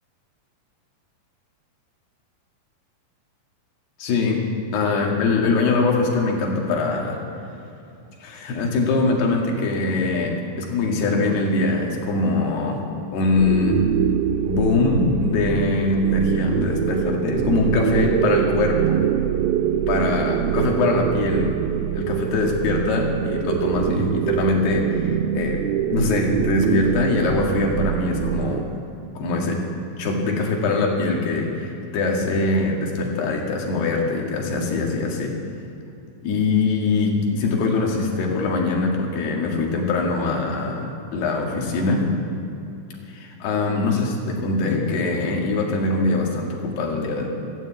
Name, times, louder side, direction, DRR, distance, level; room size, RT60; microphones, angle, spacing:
voice 1, 4.0-4.4 4.7-7.2 8.2-12.8 13.1-13.8 14.4-19.0 19.9-21.6 21.9-25.6 25.9-28.7 29.2-29.6 30.0-35.4 36.2-42.1 43.1-47.3, left 3 dB, 75° left, 0 dB, 4.0 m, -22 dB
sound 1, 13.4-28.6, right 11 dB, 80° right, 2.2 m, -24 dB
13.5 x 12.5 x 8.6 m, 2.7 s
omnidirectional pair, 4.8 m